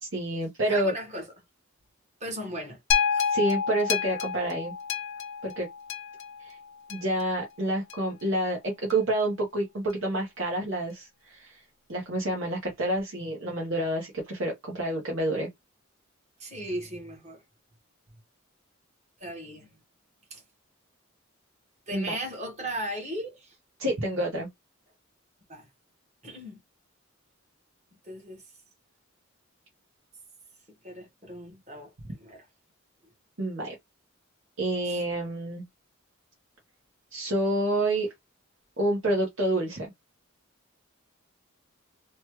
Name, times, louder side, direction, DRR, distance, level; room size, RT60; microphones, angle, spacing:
voice 1, 0.0-0.9 3.3-4.7 5.4-5.7 6.4-6.6 6.9-11.6 11.9-15.5 21.9-22.1 23.8-24.5 33.4-33.7 34.6-35.6 37.1-38.1 38.8-39.9, right 1 dB, 65° right, 1.0 m, -28 dB
voice 2, 0.7-1.3 2.2-2.8 3.1-3.4 16.4-17.4 19.2-19.7 20.3-20.4 21.9-23.6 25.5-25.7 26.2-26.6 28.0-28.4 30.8-32.4 34.8-35.0, right 1 dB, 30° right, 1.2 m, -37 dB
sound 1, 2.9-7.2 7.9-8.0, left 7 dB, 60° left, 0.5 m, -29 dB
3.0 x 2.3 x 3.0 m
head